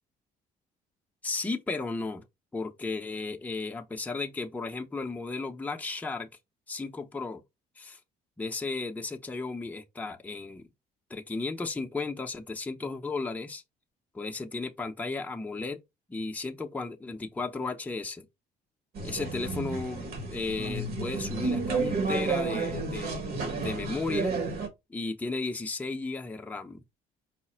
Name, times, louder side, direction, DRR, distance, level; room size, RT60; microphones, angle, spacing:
voice 1, 1.2-2.2 2.5-6.3 6.7-7.4 7.8-8.0 8.4-10.7 11.1-13.6 14.1-15.8 16.1-18.3 19.0-24.3 24.9-26.8, left 3 dB, 10° left, 0.6 m, -34 dB
sound 1, 18.9-24.7, right 4 dB, 65° right, 1.5 m, -31 dB
4.8 x 2.0 x 4.2 m
cardioid pair, 110°, 17 cm